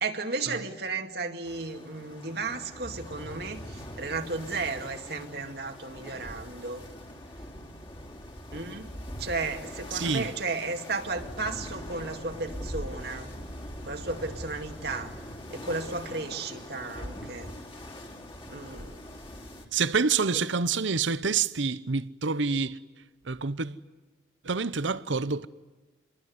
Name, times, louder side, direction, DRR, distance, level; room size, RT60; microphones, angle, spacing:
voice 1, 0.0-6.8 8.5-8.9 9.2-13.3 13.9-15.2 15.5-17.5 18.5-19.1 20.3-20.4, right 3 dB, 55° right, 2.2 m, -34 dB
sound 1, 1.5-19.7, equal, 25° left, 3.1 m, -42 dB
voice 2, 9.9-10.3 19.7-22.8 23.2-23.8 24.4-25.5, right 5 dB, 80° right, 0.9 m, -27 dB
27.5 x 22.5 x 9.5 m
head